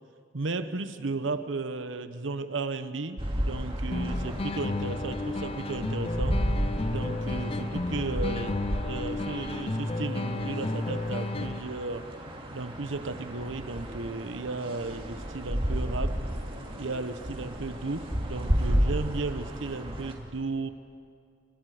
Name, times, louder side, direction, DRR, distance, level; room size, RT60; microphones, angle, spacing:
voice 1, 0.3-6.4 6.8-8.6 8.8-12.0 12.5-16.2 16.8-20.7, right 3 dB, 80° right, 11 dB, 1.0 m, -34 dB
sound 1, 3.2-20.1, equal, 30° right, 2.7 m, -33 dB
sound 2, 3.9-11.9, left 2 dB, 30° left, 0.6 m, -32 dB
29.5 x 24.5 x 5.0 m, 2.3 s
head